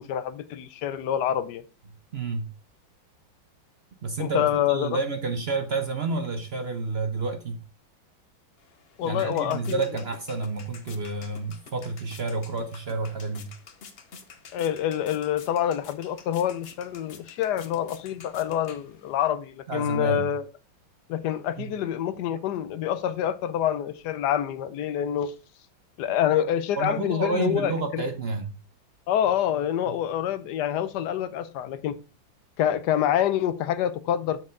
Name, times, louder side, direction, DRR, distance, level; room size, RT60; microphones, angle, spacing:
voice 1, 0.0-1.6 4.2-5.0 9.0-9.8 14.5-20.4 21.1-25.3 26.0-28.0 29.1-32.0 32.6-34.4, left 10 dB, 70° left, 1.1 m, -26 dB
voice 2, 2.1-2.5 4.0-7.6 9.0-13.5 19.7-20.3 21.6-21.7 26.8-28.5 29.9-30.0, right 3 dB, 60° right, 0.6 m, -30 dB
sound 1, 8.6-19.3, left 5 dB, 55° left, 0.7 m, -49 dB
7.6 x 6.1 x 3.7 m
omnidirectional pair, 2.1 m